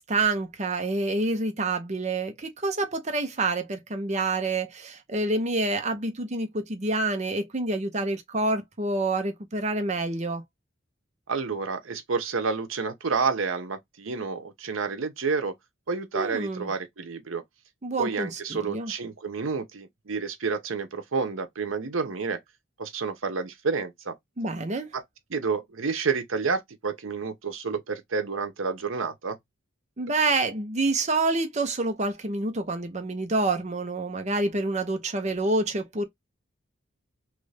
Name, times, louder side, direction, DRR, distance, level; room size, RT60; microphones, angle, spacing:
voice 1, 0.0-10.4 16.1-16.7 17.8-18.9 24.4-24.9 30.0-36.1, right 2 dB, 35° right, 0.7 m, -27 dB
voice 2, 11.3-15.5 15.9-17.4 18.0-22.4 22.8-24.2 24.9-25.0 25.3-29.4, right 5 dB, 85° right, 0.8 m, -29 dB
3.2 x 2.6 x 3.2 m
head